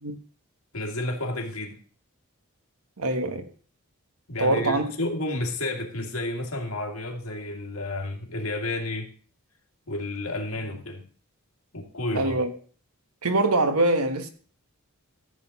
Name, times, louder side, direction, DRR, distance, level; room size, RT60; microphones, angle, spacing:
voice 1, 0.7-1.8 4.3-9.1 9.9-11.0 11.7-12.4, left 2 dB, 70° left, 2.2 m, -31 dB
voice 2, 3.0-3.5 4.4-4.9 12.1-12.5 13.2-14.3, right 2 dB, 90° right, 1.4 m, -23 dB
14.0 x 7.8 x 4.1 m
head